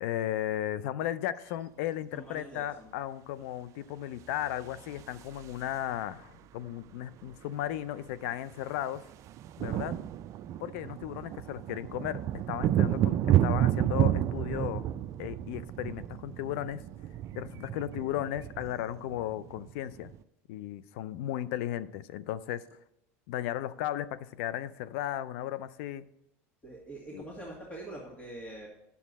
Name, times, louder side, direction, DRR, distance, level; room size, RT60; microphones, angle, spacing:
voice 1, 0.0-9.1 9.6-9.9 10.6-14.9 15.2-16.8 17.3-20.1 20.5-22.6 23.3-26.1 27.1-27.3, left 12 dB, 75° left, 17 dB, 0.4 m, -35 dB
voice 2, 2.1-2.9 26.6-28.7, right 1 dB, 20° left, -3 dB, 2.1 m, -44 dB
sound 1, 4.4-6.0 7.3-7.4 7.6-7.8 8.1-20.2, right 12 dB, 45° right, 0.4 m, -31 dB
9.2 x 7.2 x 4.1 m, 0.83 s
supercardioid pair, 110°, 7 cm